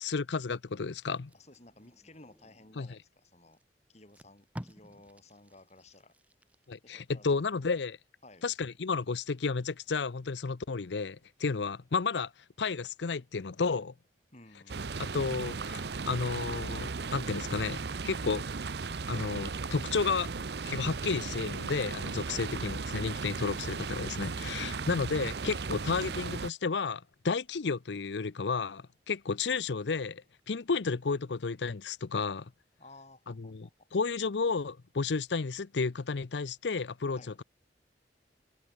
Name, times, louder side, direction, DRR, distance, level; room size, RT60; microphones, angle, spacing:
voice 1, 0.0-1.3 2.8-3.0 6.7-8.0 8.4-12.3 12.6-13.9 15.0-18.4 19.1-20.3 20.7-32.5 33.3-37.4, left 4 dB, 85° left, 0.7 m, -32 dB
Packing tape duct tape, 1.1-2.8 3.5-3.6 4.0-6.9 7.4-7.6, equal, 10° right, 2.5 m, -50 dB
voice 2, 1.3-3.6 3.9-6.1 6.8-7.7 8.2-8.5 14.3-15.0 22.3-22.5 24.3-24.9 32.8-33.9 37.2-37.4, left 2 dB, 40° left, 5.2 m, -56 dB
sound 1, 14.7-26.5, right 4 dB, 70° right, 0.7 m, -36 dB
open air
head